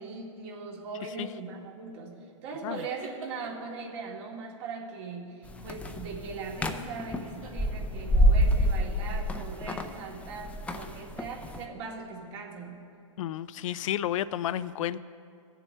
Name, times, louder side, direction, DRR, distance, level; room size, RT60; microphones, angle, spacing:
voice 1, 0.0-2.2 2.4-12.8, right 4 dB, 55° right, -1 dB, 2.1 m, -40 dB
sound 1, 2.7-3.7 6.4-6.8 7.2-7.5, right 4 dB, 80° right, 2.1 m, -46 dB
sound 2, 5.5-11.6, equal, 5° left, 0.5 m, -27 dB
voice 2, 13.2-15.0, left 11 dB, 70° left, 15 dB, 0.4 m, -31 dB
20.5 x 7.3 x 3.3 m, 2.4 s
hypercardioid pair, 130°, 17 cm